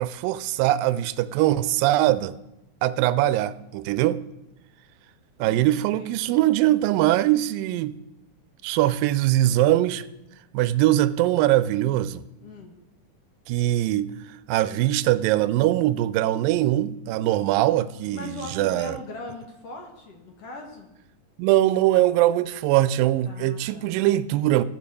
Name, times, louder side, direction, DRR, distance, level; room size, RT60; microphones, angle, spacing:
voice 1, 0.0-2.3 2.8-4.2 5.4-8.0 8.6-10.0 10.5-12.2 13.5-14.2 14.5-19.0 21.4-24.6, right 14 dB, 90° right, 2.3 m, -22 dB
voice 2, 5.4-6.4 12.4-12.8 18.1-20.9 23.2-23.9, left 3 dB, 60° left, 1.9 m, -40 dB
15.0 x 5.4 x 6.9 m
omnidirectional pair, 3.9 m